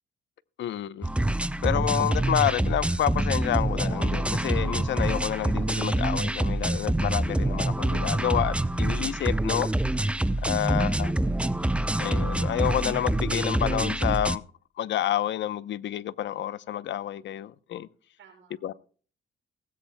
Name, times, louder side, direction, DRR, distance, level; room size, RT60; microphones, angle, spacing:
voice 1, 0.6-1.1 1.6-9.7 10.4-11.1 12.0-14.4 14.8-17.9 18.6-18.7, left 11 dB, 65° left, 0.8 m, -29 dB
sound 1, 1.0-14.4, right 1 dB, 5° right, 0.6 m, -26 dB
voice 2, 10.6-11.5 18.2-18.8, right 7 dB, 75° right, 5.9 m, -55 dB
18.0 x 16.0 x 2.2 m
cardioid pair, 90°, 20 cm